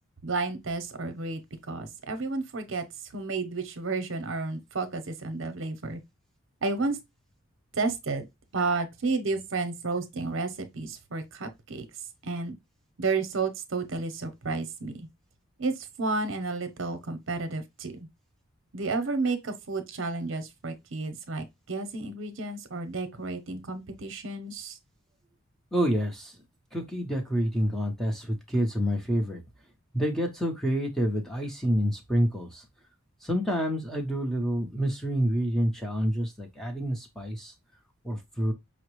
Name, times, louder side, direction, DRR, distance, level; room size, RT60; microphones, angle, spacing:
voice 1, 0.2-1.4 1.7-2.8 3.1-6.0 6.6-7.0 7.7-8.3 8.5-11.8 12.2-12.5 13.0-15.1 15.6-18.1 18.7-24.8, right 3 dB, 65° right, 0.8 m, -31 dB
voice 2, 25.7-26.3 26.7-29.4 29.9-32.6 33.2-37.5 38.0-38.5, equal, ahead, 0.7 m, -28 dB
5.7 x 2.0 x 3.0 m
head